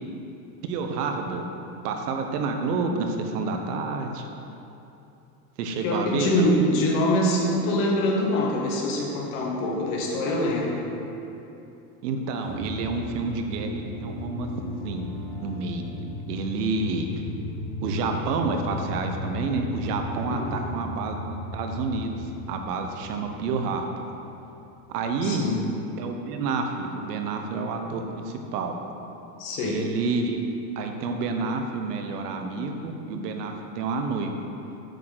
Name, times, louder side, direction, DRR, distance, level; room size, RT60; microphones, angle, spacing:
voice 1, 0.6-1.4 1.8-4.3 5.6-6.5 12.0-15.1 15.4-15.9 16.3-17.2 17.8-23.9 24.9-25.4 26.0-28.7 29.6-30.5 30.8-34.4, right 4 dB, 75° right, 4 dB, 1.3 m, -29 dB
voice 2, 5.8-10.9 20.3-20.7 25.2-25.6 29.4-29.8, left 1 dB, 60° left, -2 dB, 2.0 m, -24 dB
sound 1, 12.4-24.6, left 1 dB, 10° left, 1.8 m, -36 dB
8.6 x 6.4 x 6.2 m, 2.8 s
supercardioid pair, 165°, 47 cm